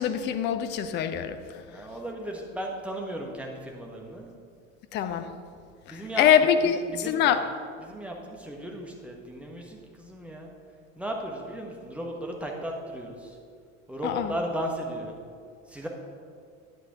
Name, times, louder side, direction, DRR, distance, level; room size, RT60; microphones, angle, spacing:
voice 1, 0.0-1.4 4.9-5.3 5.9-7.4 14.0-14.3, left 8 dB, 30° left, 10 dB, 0.5 m, -24 dB
voice 2, 1.7-4.3 5.9-6.3 6.6-7.4 7.8-10.5 11.0-13.3 13.9-15.2 15.7-15.9, equal, 5° right, 0 dB, 1.3 m, -36 dB
9.6 x 8.0 x 3.7 m, 2.2 s
figure-of-eight pair, 65°, 40 cm